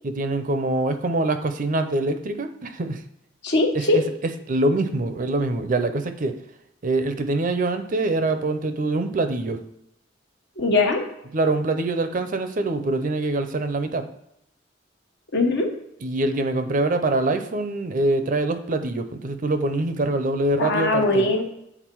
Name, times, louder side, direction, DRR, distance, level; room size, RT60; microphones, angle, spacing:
voice 1, 0.0-3.0 3.7-6.4 6.8-9.6 11.3-14.1 16.0-21.3, right 2 dB, 45° right, 9 dB, 0.6 m, -24 dB
voice 2, 3.4-4.0 10.6-11.0 15.3-15.7 20.6-21.4, left 2 dB, 65° left, 3 dB, 1.1 m, -20 dB
8.1 x 3.9 x 4.5 m, 0.79 s
head